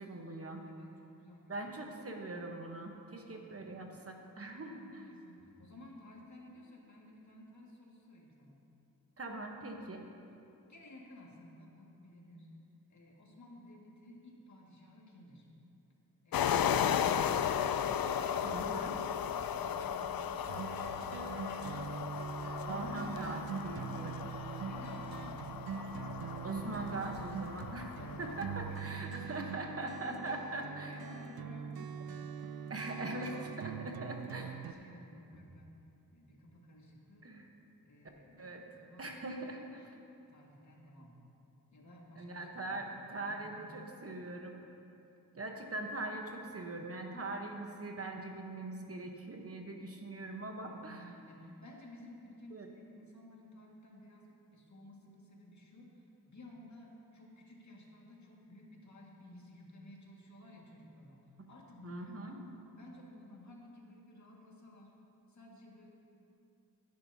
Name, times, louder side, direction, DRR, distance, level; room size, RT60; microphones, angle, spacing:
voice 1, 0.0-0.6 1.5-5.1 9.2-10.0 18.4-19.0 22.6-24.3 26.4-31.0 32.7-34.5 37.2-37.5 38.4-38.7 39.0-40.0 42.2-44.6 45.3-51.1 52.5-52.7 61.8-62.4, right 2 dB, 40° right, 2 dB, 1.1 m, -42 dB
voice 2, 0.6-1.6 3.3-3.7 4.6-8.6 10.7-12.5 12.9-15.5 19.5-20.4 21.0-22.0 24.7-25.4 28.0-29.5 29.8-32.4 34.1-35.8 36.1-37.3 37.8-39.1 40.3-41.2 41.7-43.9 50.7-62.3 62.7-64.9 65.3-65.9, left 1 dB, 50° left, -2 dB, 1.9 m, -55 dB
sound 1, 16.3-28.8, left 8 dB, 75° left, 0.5 m, -36 dB
sound 2, 20.5-34.7, right 7 dB, 80° right, 0.5 m, -43 dB
14.5 x 10.5 x 2.8 m, 2.7 s
wide cardioid pair, 70°, 36 cm